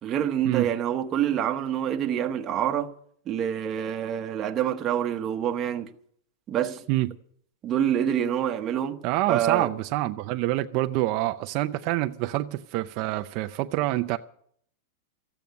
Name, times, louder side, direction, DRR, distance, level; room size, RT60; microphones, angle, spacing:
voice 1, 0.0-2.9 3.3-5.9 6.5-6.8 7.6-9.0 9.3-9.7, right 10 dB, 20° right, 1.0 m, -26 dB
voice 2, 9.0-14.2, right 17 dB, 35° right, 0.5 m, -26 dB
14.5 x 8.6 x 9.4 m
supercardioid pair, 165°, 0 cm